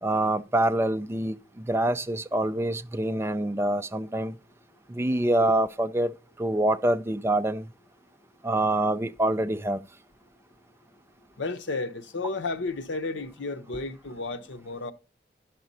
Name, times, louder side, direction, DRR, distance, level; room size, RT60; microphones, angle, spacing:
voice 1, 0.0-1.4 1.6-4.4 4.9-7.7 8.4-9.8, right 1 dB, 15° right, 0.4 m, -25 dB
voice 2, 11.4-14.9, left 3 dB, 85° left, 0.8 m, -32 dB
10.5 x 5.9 x 4.0 m
head